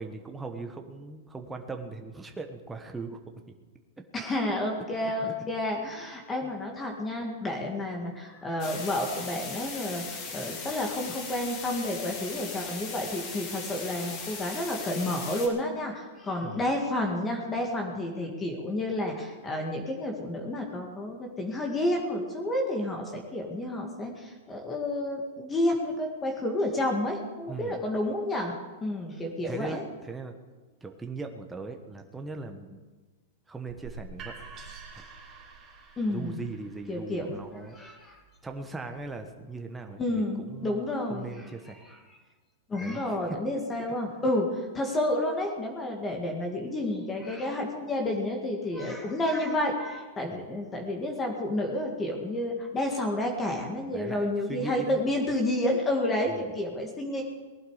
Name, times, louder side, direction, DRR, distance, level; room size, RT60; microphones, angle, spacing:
voice 1, 0.0-3.2 5.0-5.3 16.4-16.7 27.5-27.8 29.4-30.3 30.8-32.8 33.5-34.5 34.9-35.0 36.1-37.7 38.4-41.8 42.8-43.2 50.2-50.5 53.8-55.0 56.3-56.4, right 3 dB, 10° right, 4 dB, 1.1 m, -39 dB
voice 2, 4.1-28.5 28.8-29.8 36.0-36.4 36.9-38.2 40.0-41.2 41.9-42.0 42.7-57.2, left 1 dB, 15° left, 2 dB, 2.0 m, -30 dB
sound 1, 8.6-15.5, left 5 dB, 40° left, 3.4 m, -39 dB
sound 2, 33.7-39.5, right 4 dB, 30° right, 2.9 m, -48 dB
19.0 x 11.5 x 5.0 m, 1.3 s
hypercardioid pair, 140°, 0 cm